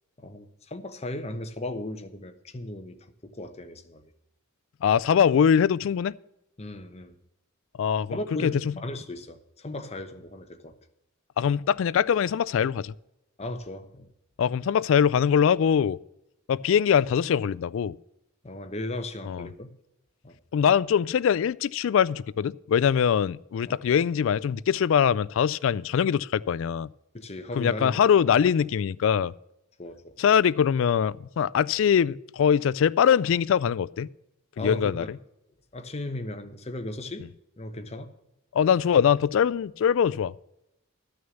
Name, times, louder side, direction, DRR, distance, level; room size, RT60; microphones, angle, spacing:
voice 1, 0.2-3.0 3.2-4.1 6.6-7.1 8.1-10.8 13.4-14.1 18.4-19.7 20.2-20.4 23.7-23.8 27.1-28.1 29.8-30.1 34.6-35.1 35.7-37.3 37.6-38.1, left 1 dB, 30° left, 0.9 m, -36 dB
voice 2, 4.8-6.1 7.8-8.2 8.4-8.5 11.4-12.9 14.4-16.0 16.5-17.9 19.3-19.5 20.5-26.9 27.6-29.3 30.2-34.1 34.6-35.0 38.5-40.3, left 8 dB, 65° left, 0.3 m, -22 dB
12.5 x 6.4 x 7.0 m
head